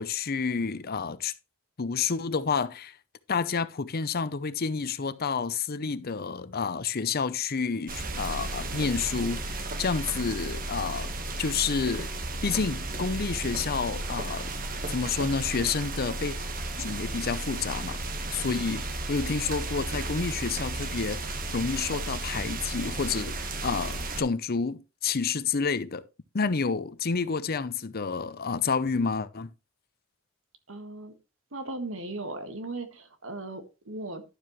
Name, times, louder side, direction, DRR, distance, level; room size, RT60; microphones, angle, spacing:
voice 1, 0.0-1.3 1.8-3.0 3.3-12.1 12.4-16.4 16.8-18.0 18.3-26.0 26.3-29.5, left 5 dB, 50° left, 0.7 m, -29 dB
sound 1, 7.9-24.2, right 2 dB, 45° right, 1.3 m, -34 dB
voice 2, 30.7-31.1 31.5-34.2, right 2 dB, 75° right, 1.7 m, -37 dB
11.5 x 7.5 x 3.1 m
head